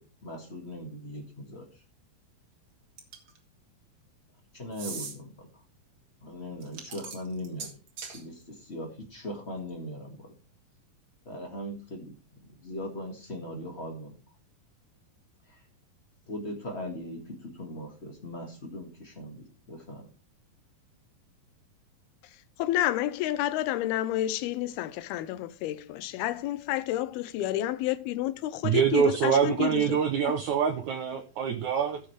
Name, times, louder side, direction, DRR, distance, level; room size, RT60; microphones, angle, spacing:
voice 1, 0.2-1.8 4.5-5.5 6.2-7.8 8.1-10.3 11.2-12.1 12.6-14.2 15.5-15.6 16.3-20.1, left 1 dB, 40° left, 0.9 m, -39 dB
sound 1, 3.0-3.4 4.7-5.1 6.6-8.2, right 5 dB, 45° right, 1.8 m, -40 dB
voice 2, 22.6-29.9, left 13 dB, 85° left, 2.6 m, -30 dB
voice 3, 28.6-32.0, right 7 dB, 75° right, 1.7 m, -25 dB
15.5 x 6.9 x 3.3 m
omnidirectional pair, 4.4 m